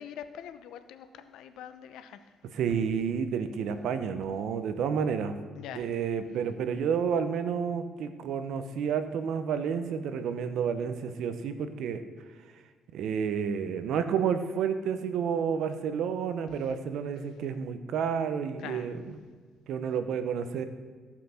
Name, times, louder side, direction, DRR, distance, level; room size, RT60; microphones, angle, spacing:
voice 1, 0.0-2.2 5.6-5.9 18.6-18.9, left 9 dB, 85° left, 11 dB, 0.7 m, -43 dB
voice 2, 2.4-5.3 5.7-12.0 12.9-19.1 19.7-20.6, right 7 dB, 80° right, 10 dB, 0.9 m, -30 dB
15.0 x 5.9 x 5.8 m, 1.5 s
cardioid pair, 90°, 0 cm